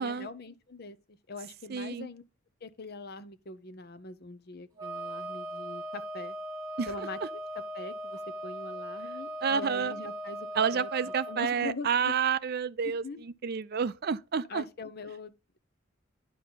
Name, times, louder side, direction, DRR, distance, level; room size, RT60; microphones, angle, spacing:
voice 1, 0.0-2.2 2.6-6.4 6.9-7.2 7.7-10.5 10.7-10.9 11.3-12.1 12.8-13.2 14.5-15.3, left 3 dB, 50° left, 0.8 m, -42 dB
voice 2, 1.7-2.1 6.8-6.9 9.4-9.9 10.6-13.0 13.4-14.6, right 6 dB, 50° right, 0.4 m, -29 dB
Wind instrument woodwind instrument, 4.8-11.5, right 1 dB, 20° right, 2.4 m, -39 dB
10.0 x 5.4 x 3.9 m
head